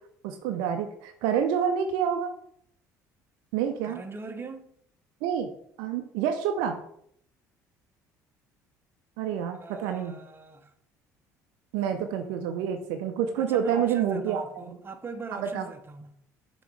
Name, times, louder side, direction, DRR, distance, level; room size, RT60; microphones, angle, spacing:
voice 1, 0.2-2.3 3.5-4.0 5.2-5.5 5.8-6.8 9.2-10.2 11.7-14.8 15.3-15.6, right 8 dB, 65° right, 0.6 m, -28 dB
voice 2, 3.8-4.7 9.6-10.7 13.3-16.1, right 4 dB, 25° right, 0.8 m, -41 dB
6.8 x 3.1 x 4.7 m
figure-of-eight pair, 55°, 9 cm